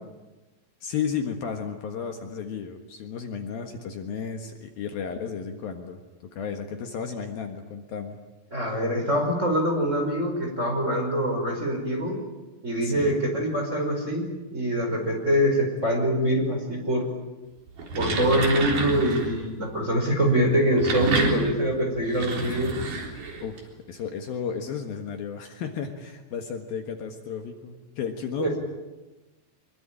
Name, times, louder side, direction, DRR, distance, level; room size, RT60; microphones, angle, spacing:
voice 1, 0.8-6.0 6.3-8.2 12.8-13.2 23.4-23.6 23.9-28.5, left 7 dB, 65° left, 5 dB, 3.2 m, -33 dB
voice 2, 8.5-12.2 12.6-17.1 18.0-22.7 28.4-28.6, equal, 15° right, 2 dB, 5.3 m, -24 dB
sound 1, 17.7-19.4 20.5-23.6, right 3 dB, 50° right, 5.2 m, -29 dB
25.5 x 23.5 x 9.0 m, 1.1 s
omnidirectional pair, 4.9 m